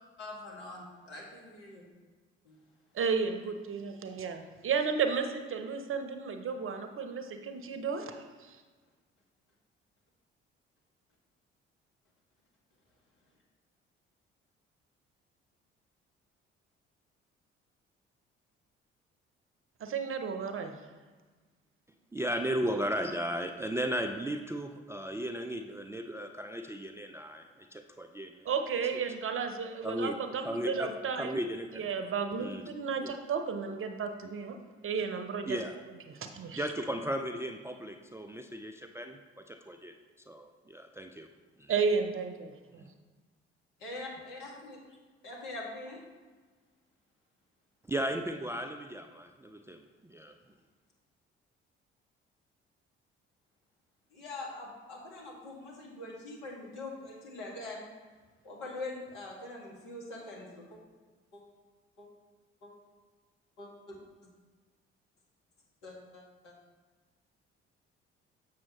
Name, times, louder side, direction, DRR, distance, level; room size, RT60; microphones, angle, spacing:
voice 1, 0.2-1.8 2.4-2.6 43.8-45.0 45.2-46.0 54.1-57.9 58.4-60.8 61.3-61.4 62.0-62.1 62.6-62.7 63.6-64.0 65.8-66.5, left 2 dB, 70° left, -3 dB, 2.1 m, -43 dB
voice 2, 2.9-8.6 19.8-20.7 28.5-31.3 31.8-34.6 34.8-35.6 36.2-36.6 41.7-42.8, right 5 dB, 40° right, 7 dB, 0.8 m, -33 dB
voice 3, 22.1-28.5 29.8-30.2 30.4-31.9 32.4-32.6 33.0-33.2 35.5-35.8 36.5-39.9 40.3-41.3 41.6-41.7 42.8-42.9 47.9-50.3, equal, 10° right, 5 dB, 0.4 m, -36 dB
7.3 x 6.1 x 3.1 m, 1.4 s
hypercardioid pair, 50°, 31 cm